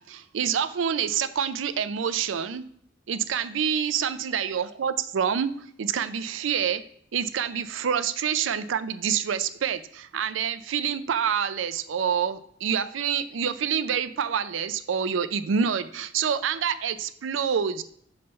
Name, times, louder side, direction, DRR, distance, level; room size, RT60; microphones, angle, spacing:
voice 1, 0.0-2.6 3.1-5.5 5.8-6.8 7.1-17.8, right 7 dB, 85° right, 13 dB, 0.4 m, -27 dB
5.3 x 3.3 x 5.5 m, 0.64 s
head